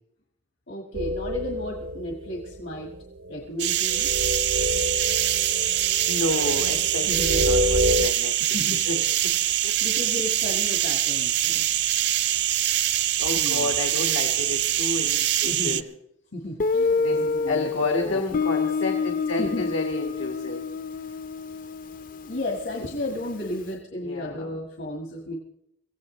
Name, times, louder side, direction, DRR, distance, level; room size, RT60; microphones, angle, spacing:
voice 1, 0.7-2.9 3.3-4.1 7.1-7.3 8.5-8.8 9.8-11.6 13.3-13.8 15.4-15.8 16.3-18.4 19.4-19.7 22.2-25.4, left 1 dB, 70° left, 1 dB, 1.6 m, -34 dB
sound 1, 0.9-8.1, left 1 dB, 85° right, 0.9 m, -28 dB
sound 2, 3.6-15.8, right 13 dB, 60° right, 0.5 m, -24 dB
voice 2, 6.1-8.4 8.7-9.7 11.6-11.8 12.9-15.9 17.0-20.6 24.0-24.5, left 2 dB, 90° left, 3 dB, 1.6 m, -31 dB
Guitar, 16.6-23.3, left 4 dB, 45° left, 0.5 m, -28 dB
24.0 x 16.0 x 3.2 m, 0.75 s
head